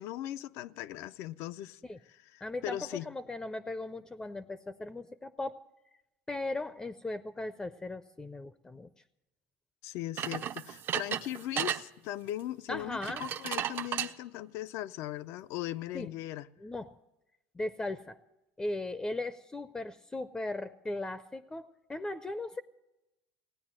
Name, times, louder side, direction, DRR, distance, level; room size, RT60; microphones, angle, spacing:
voice 1, 0.0-3.1 9.8-16.5, left 14 dB, 70° left, 0.5 m, -39 dB
voice 2, 2.4-5.6 6.3-8.9 12.7-13.2 15.9-16.1 16.6-17.0 17.5-18.2 18.6-22.6, left 2 dB, 15° left, 0.5 m, -38 dB
sound 1, 10.2-11.8 13.0-14.1, right 9 dB, 45° right, 0.6 m, -34 dB
16.5 x 9.5 x 7.5 m
supercardioid pair, 110°, 5 cm